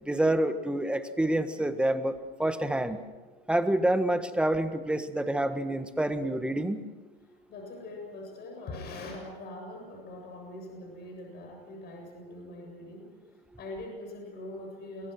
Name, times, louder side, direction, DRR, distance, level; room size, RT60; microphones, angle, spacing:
voice 1, 0.1-2.1 2.4-3.0 3.5-6.8, right 1 dB, 5° right, 9 dB, 1.5 m, -27 dB
voice 2, 7.2-13.1 13.6-15.1, left 2 dB, 35° left, 2 dB, 7.8 m, -42 dB
27.5 x 22.5 x 6.2 m, 1.3 s
hypercardioid pair, 120°, 29 cm